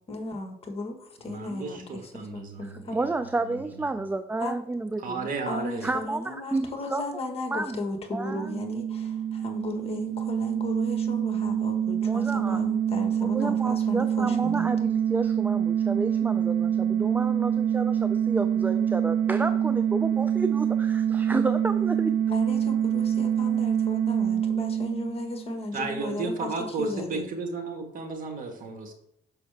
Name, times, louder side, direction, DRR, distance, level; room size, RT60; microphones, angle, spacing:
voice 1, 0.1-3.1 4.4-4.5 5.5-14.7 22.3-27.3, left 2 dB, 35° left, 5 dB, 1.4 m, -35 dB
voice 2, 1.3-2.8 5.0-5.9 25.7-28.9, right 4 dB, 55° right, 4 dB, 1.5 m, -33 dB
voice 3, 2.9-5.3 5.8-7.0 7.5-7.8 8.1-8.5 12.0-12.6 13.3-22.1, right 2 dB, 10° right, 10 dB, 0.3 m, -31 dB
sound 1, 8.1-25.6, right 9 dB, 85° right, 0.5 m, -26 dB
6.4 x 5.7 x 3.4 m, 0.73 s
cardioid pair, 110°, 17 cm